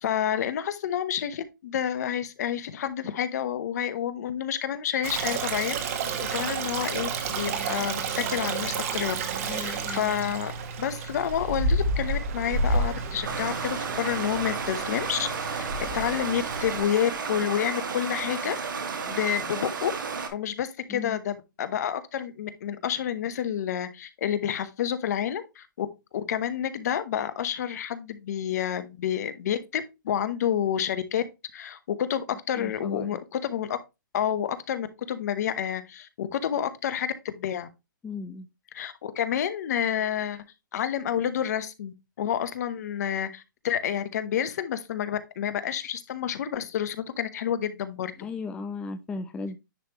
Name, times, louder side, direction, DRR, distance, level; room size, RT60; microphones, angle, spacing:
voice 1, 0.0-5.8 6.2-9.1 9.4-10.5 10.8-15.7 15.9-18.6 19.1-19.9 20.3-25.9 26.1-31.2 31.5-33.8 34.1-37.7 38.7-40.4 40.7-48.1, left 9 dB, 55° left, 1.0 m, -29 dB
Stream, 5.0-16.8, right 3 dB, 45° right, 1.4 m, -30 dB
voice 2, 9.4-10.1 20.9-21.2 32.5-33.2 38.0-38.5 48.2-49.6, left 4 dB, 10° left, 0.4 m, -36 dB
Stream 2, 13.2-20.3, right 5 dB, 70° right, 1.8 m, -33 dB
10.0 x 3.4 x 3.0 m
hypercardioid pair, 145°, 11 cm